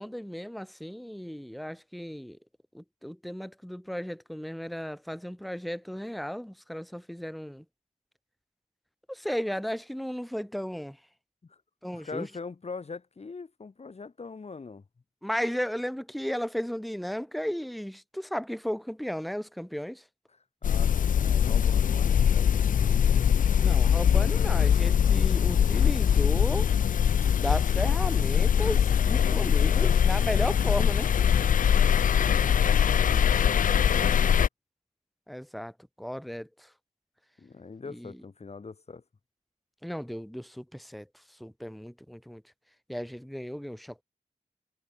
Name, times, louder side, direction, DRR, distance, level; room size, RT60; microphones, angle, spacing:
voice 1, 0.0-2.4 2.7-7.6 9.1-11.0 11.8-12.3 15.2-20.1 23.6-26.7 27.3-31.1 35.3-36.7 37.9-38.2 39.8-42.4 42.9-44.0, equal, ahead, 0.5 m, -35 dB
voice 2, 11.9-14.8 20.6-23.3 29.2-30.0 31.6-34.4 37.4-39.0, left 4 dB, 50° left, 3.6 m, -42 dB
sound 1, 20.6-34.5, left 8 dB, 80° left, 0.4 m, -22 dB
sound 2, 27.1-30.8 31.4-31.5 31.6-32.7, right 5 dB, 60° right, 7.9 m, -59 dB
wide cardioid pair, 110°, 14 cm